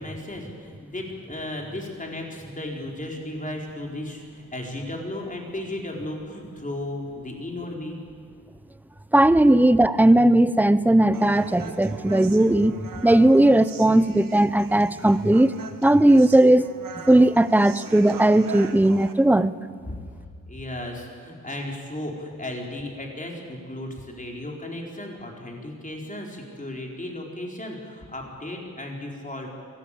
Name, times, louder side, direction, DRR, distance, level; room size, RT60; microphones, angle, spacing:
voice 1, 0.0-8.0 19.9-20.0 20.5-29.5, left 1 dB, 25° left, 0 dB, 4.3 m, -35 dB
voice 2, 9.1-12.8 13.0-15.5 15.8-16.7 17.1-19.5, right 1 dB, 5° right, 14 dB, 0.7 m, -17 dB
Human voice, 11.1-19.1, right 6 dB, 85° right, 1.4 m, -40 dB
23.5 x 17.5 x 8.6 m, 2.1 s
wide cardioid pair, 95°, 33 cm